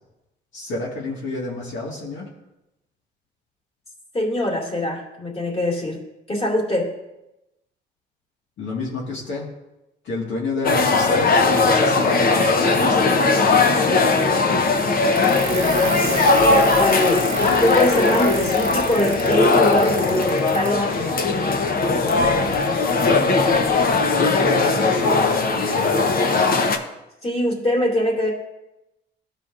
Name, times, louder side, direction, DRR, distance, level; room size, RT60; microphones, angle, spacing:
voice 1, 0.5-2.3 8.6-9.5 10.0-11.4 11.6-14.0 23.0-23.3 24.1-26.1, left 2 dB, 75° left, -3 dB, 1.9 m, -29 dB
voice 2, 4.1-6.0 6.3-6.9 16.8-21.0 27.2-28.3, left 1 dB, 30° left, -1 dB, 2.5 m, -23 dB
sound 1, 10.6-26.8, left 3 dB, 45° left, 0.9 m, -19 dB
sound 2, 15.1-20.8, right 5 dB, 40° right, 1.0 m, -33 dB
15.0 x 5.0 x 2.5 m, 0.94 s
cardioid pair, 90°, 20 cm